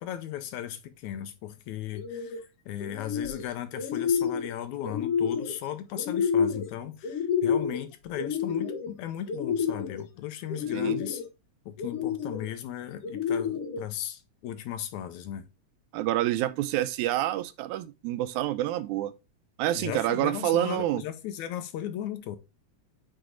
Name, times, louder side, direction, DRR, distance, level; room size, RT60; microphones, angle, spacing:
voice 1, 0.0-11.2 11.7-15.5 19.7-22.4, left 11 dB, 80° left, 2.0 m, -36 dB
sound 1, 1.9-2.4 2.8-3.5 3.7-4.5 4.8-5.6 6.0-6.7 7.0-7.8 8.2-8.9 9.3-10.0 10.5-11.3 11.8-12.5 13.0-13.8, left 6 dB, 65° left, 1.7 m, -29 dB
voice 2, 10.7-11.0 15.9-19.1 19.6-21.0, right 14 dB, 80° right, 1.9 m, -28 dB
7.8 x 3.3 x 3.8 m
omnidirectional pair, 3.5 m